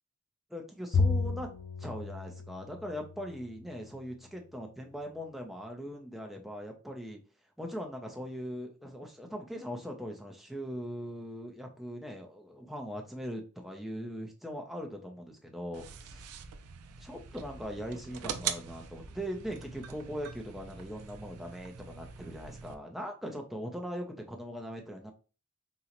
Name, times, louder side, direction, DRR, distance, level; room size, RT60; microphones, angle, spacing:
voice 1, 0.5-1.5 1.8-7.2 7.6-16.3 17.0-25.1, equal, ahead, 2 dB, 0.4 m, -40 dB
Bowed string instrument, 0.9-3.5, left 4 dB, 55° left, 0.5 m, -32 dB
sound 1, 15.7-22.7, right 7 dB, 85° right, 0.4 m, -42 dB
3.7 x 2.0 x 2.9 m, 0.34 s
head